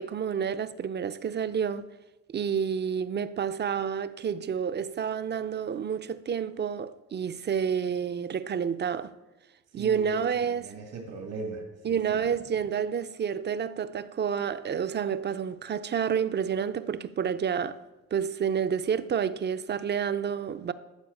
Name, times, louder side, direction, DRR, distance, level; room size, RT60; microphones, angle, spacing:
voice 1, 0.0-1.9 2.3-9.1 9.7-10.7 11.8-17.8 18.1-20.7, right 7 dB, 35° right, 0.5 m, -29 dB
voice 2, 9.7-12.2, right 3 dB, 80° right, 1.8 m, -39 dB
13.5 x 4.6 x 7.1 m
cardioid pair, 90°, 30 cm